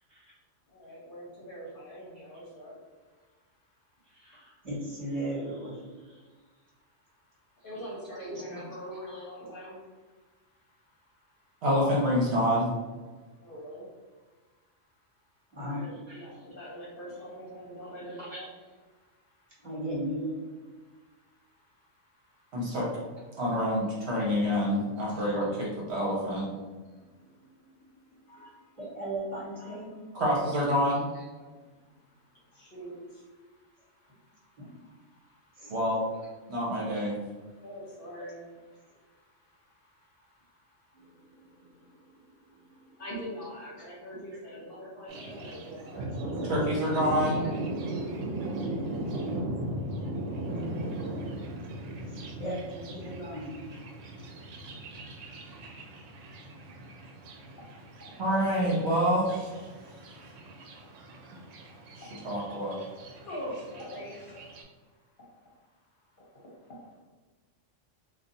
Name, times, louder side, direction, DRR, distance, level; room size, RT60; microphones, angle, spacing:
voice 1, 0.7-4.6 6.2-11.6 13.1-18.5 18.9-19.7 20.7-22.8 23.3-23.4 26.9-27.8 28.1-28.8 29.5-29.8 31.4-35.7 36.4-36.6 37.1-47.5 47.8-52.4 53.9-56.9 57.9-58.2 59.7-64.5 64.8-67.0, equal, 50° left, -4 dB, 0.8 m, -47 dB
voice 2, 4.0-6.2 8.2-8.4 15.5-16.4 18.1-18.4 19.6-20.4 23.2-23.3 25.2-25.3 26.8-28.2 28.8-29.9 31.1-31.5 34.6-34.7 35.5-35.7 36.9-37.0 40.9-43.0 43.8-43.9 44.3-44.6 45.2-45.3 47.4-47.5 47.8-48.0 52.1-53.6 58.0-58.1 58.6-58.7 59.6-59.7 60.1-60.2 62.8-62.9, right 1 dB, 30° right, -6 dB, 1.2 m, -39 dB
voice 3, 11.6-12.7 22.5-22.9 23.4-26.5 30.1-31.0 35.7-36.0 36.5-37.2 46.5-47.4 58.2-59.5 62.2-62.8, equal, 65° right, -4 dB, 1.1 m, -27 dB
Thunder, 45.1-64.6, right 1 dB, 85° right, 0.9 m, -38 dB
2.5 x 2.4 x 3.9 m, 1.3 s
omnidirectional pair, 1.3 m